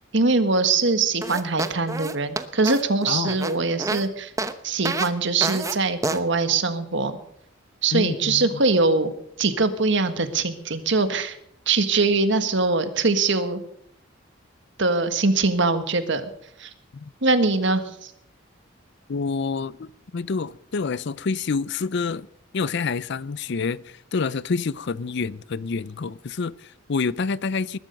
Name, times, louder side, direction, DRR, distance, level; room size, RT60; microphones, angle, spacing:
voice 1, 0.1-4.3 4.6-7.2 7.8-9.1 9.4-11.4 11.7-13.6 14.8-16.2 16.6-16.7 17.2-18.1, right 3 dB, 65° right, 1.6 m, -22 dB
sound 1, 1.2-4.0 4.4-4.5 4.8-5.1 5.4-5.7 6.0-6.2, right 2 dB, 15° right, 0.9 m, -28 dB
voice 2, 7.9-8.5 16.9-17.1 19.1-22.3 22.5-27.8, left 4 dB, 60° left, 0.5 m, -28 dB
20.5 x 12.0 x 5.3 m
head